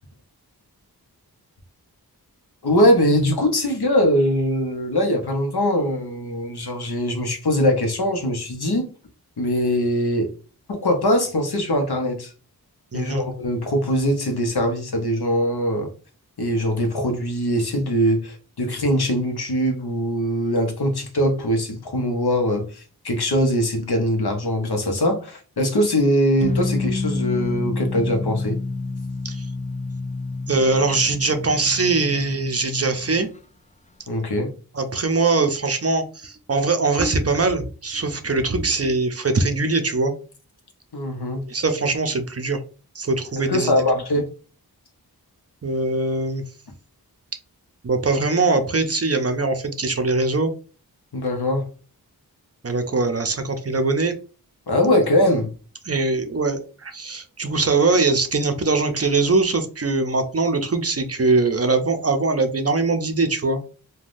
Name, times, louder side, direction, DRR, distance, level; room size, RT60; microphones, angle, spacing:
voice 1, 2.6-8.9 9.4-10.3 10.7-12.3 12.9-15.9 16.4-28.6 34.1-34.5 40.9-41.4 43.4-44.3 51.1-51.7 54.7-55.5, equal, 80° left, 0.8 m, -22 dB
voice 2, 12.9-13.3 29.2-29.5 30.5-33.3 34.7-40.1 41.5-42.6 43.0-43.7 45.6-46.4 47.8-50.5 52.6-54.1 55.9-63.6, right 3 dB, 40° right, 0.5 m, -22 dB
sound 1, 26.4-33.3, left 3 dB, 20° left, 0.4 m, -28 dB
3.3 x 2.2 x 2.5 m
wide cardioid pair, 45°, 39 cm